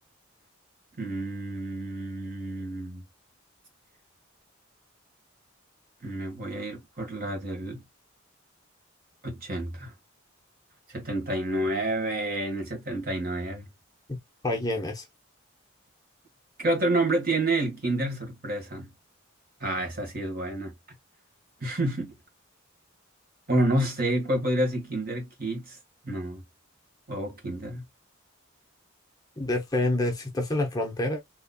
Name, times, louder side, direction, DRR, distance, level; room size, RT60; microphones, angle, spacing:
voice 1, 1.0-3.0 6.0-7.8 9.2-9.9 10.9-13.7 16.6-18.9 19.6-20.7 21.6-22.1 23.5-25.8 26.0-26.4 27.1-27.8, right 1 dB, 45° right, 1.5 m, -29 dB
voice 2, 14.4-15.0 29.4-31.3, left 2 dB, 15° left, 0.7 m, -27 dB
4.0 x 3.0 x 2.2 m
head